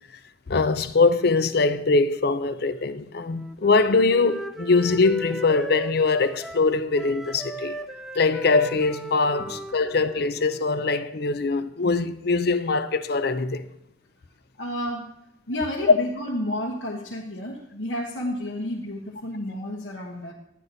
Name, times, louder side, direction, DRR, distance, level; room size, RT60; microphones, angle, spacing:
voice 1, 0.5-7.8 8.2-13.7 15.9-16.0, left 3 dB, 60° left, 0.6 m, -22 dB
Wind instrument woodwind instrument, 3.1-6.7 6.9-10.8, right 2 dB, ahead, 0.5 m, -38 dB
voice 2, 14.6-15.1 15.5-20.3, left 1 dB, 75° left, 1.3 m, -31 dB
11.5 x 9.4 x 4.0 m
head